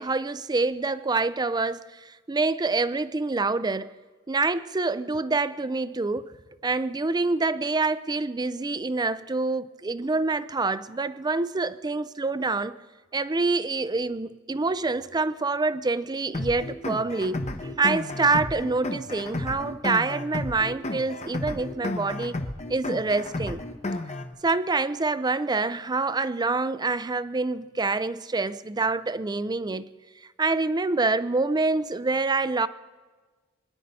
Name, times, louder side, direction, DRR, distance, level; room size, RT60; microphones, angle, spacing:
voice 1, 0.0-3.9 4.3-6.3 6.6-12.8 13.1-22.4 22.7-23.6 24.4-29.9 30.4-32.7, right 3 dB, 20° right, 0.5 m, -26 dB
sound 1, 16.3-24.3, left 2 dB, 30° left, 1.0 m, -32 dB
25.5 x 10.0 x 5.5 m
head